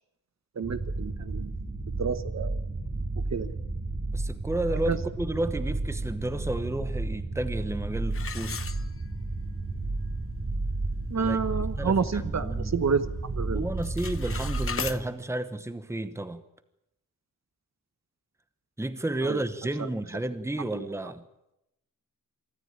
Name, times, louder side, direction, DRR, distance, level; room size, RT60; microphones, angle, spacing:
sound 1, 0.6-15.0, right 2 dB, 35° right, 2.6 m, -32 dB
voice 1, 0.6-1.5 2.0-2.6 3.3-3.6 4.7-5.0 11.1-13.7 19.2-19.4 20.6-21.1, right 5 dB, 55° right, 1.1 m, -30 dB
voice 2, 4.1-8.6 11.2-12.7 13.5-16.4 18.8-21.2, right 1 dB, 10° right, 1.0 m, -32 dB
sound 2, 8.1-9.4 9.8-9.9 10.5-10.6 11.0-11.3 11.7-12.8 13.1-13.5 13.7-15.0, left 6 dB, 40° left, 0.9 m, -37 dB
24.5 x 13.5 x 8.8 m
wide cardioid pair, 145°, 34 cm